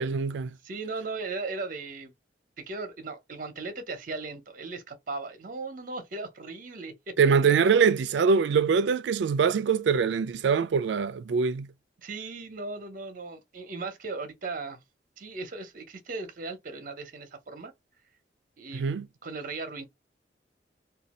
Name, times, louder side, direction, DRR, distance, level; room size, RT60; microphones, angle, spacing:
voice 1, 0.0-0.5 7.2-11.7 18.7-19.1, right 6 dB, 80° right, 0.4 m, -23 dB
voice 2, 0.6-2.1 2.6-7.1 12.0-14.8 15.2-17.7 18.6-19.8, right 3 dB, 50° right, 0.7 m, -37 dB
2.6 x 2.3 x 4.1 m
head